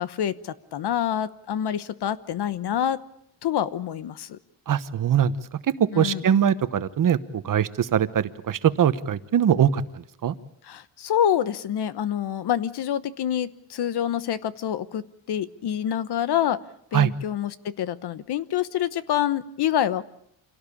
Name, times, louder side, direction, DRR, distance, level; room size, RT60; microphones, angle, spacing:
voice 1, 0.0-3.0 3.4-4.4 5.9-6.2 10.7-15.0 15.3-16.6 16.9-20.0, left 10 dB, 60° left, 15 dB, 1.1 m, -26 dB
voice 2, 4.7-5.3 5.8-10.3 16.9-17.1, right 9 dB, 45° right, 12 dB, 1.1 m, -22 dB
27.0 x 17.5 x 8.6 m, 0.78 s
cardioid pair, 145°, 45 cm